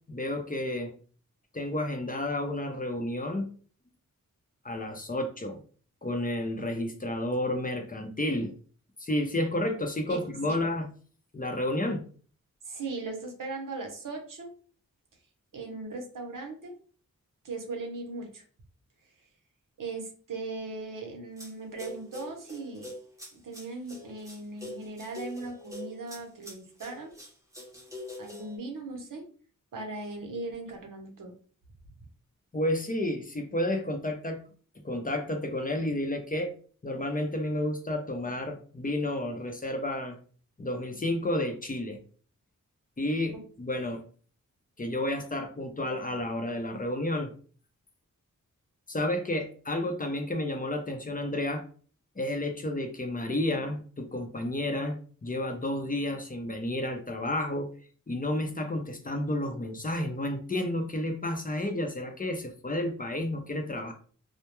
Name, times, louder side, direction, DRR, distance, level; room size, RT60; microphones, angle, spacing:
voice 1, 0.1-0.9 1.5-3.5 4.6-5.6 6.0-8.5 9.0-10.9 11.3-12.0 32.5-34.4 34.8-36.5 36.8-40.2 40.6-42.0 43.0-44.0 44.8-47.3 48.9-51.6 52.2-57.7 58.1-63.9, left 1 dB, 25° left, 4 dB, 0.5 m, -31 dB
voice 2, 10.1-10.6 12.7-14.5 15.5-16.7 17.4-18.4 19.8-22.9 23.3-27.1 28.2-29.2 29.7-31.3, right 3 dB, 75° right, 2 dB, 0.7 m, -38 dB
sound 1, 21.4-21.5 21.8-28.6, left 1 dB, 10° right, 1.2 m, -44 dB
2.2 x 2.1 x 2.9 m, 0.42 s
cardioid pair, 60°, 33 cm